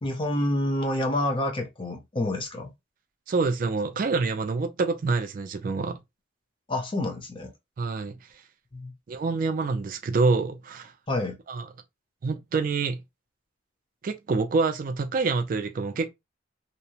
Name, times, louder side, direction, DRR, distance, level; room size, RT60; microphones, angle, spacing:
voice 1, 0.0-2.7 6.7-7.5 8.7-8.9 11.1-11.4, left 1 dB, 25° left, 0.6 m, -28 dB
voice 2, 3.3-5.9 7.8-8.2 9.1-10.9 11.5-11.7 12.2-13.0 14.0-16.1, right 4 dB, 45° right, 0.3 m, -26 dB
2.7 x 2.0 x 2.8 m
head